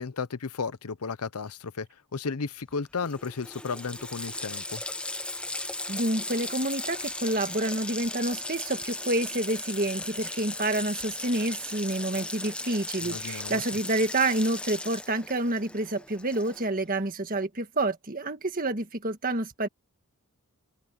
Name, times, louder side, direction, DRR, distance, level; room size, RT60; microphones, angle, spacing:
voice 1, 0.0-1.9 2.1-4.8 13.0-13.6, left 5 dB, 85° left, 0.8 m, -34 dB
Water tap faucet, 2.7-2.8 3.0-16.8, left 2 dB, 5° left, 0.9 m, -37 dB
voice 2, 5.9-19.7, right 2 dB, 40° right, 1.7 m, -28 dB
head